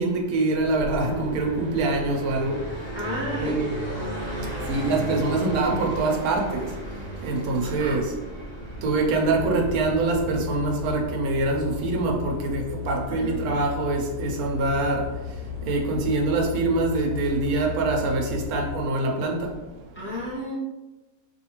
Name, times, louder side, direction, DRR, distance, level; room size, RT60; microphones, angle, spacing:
voice 1, 0.0-2.5 3.3-3.8 4.7-6.7 7.2-8.1 8.8-15.0 15.7-19.5, right 2 dB, 70° right, 1 dB, 1.0 m, -24 dB
Car passing by, 0.6-11.2, right 1 dB, 45° right, 0.6 m, -35 dB
voice 2, 2.9-3.7 7.6-8.0 13.1-13.6 19.9-20.6, equal, 10° left, -8 dB, 0.8 m, -32 dB
sound 1, 9.3-18.8, left 7 dB, 80° left, 1.2 m, -35 dB
2.7 x 2.5 x 2.8 m, 1.1 s
omnidirectional pair, 1.7 m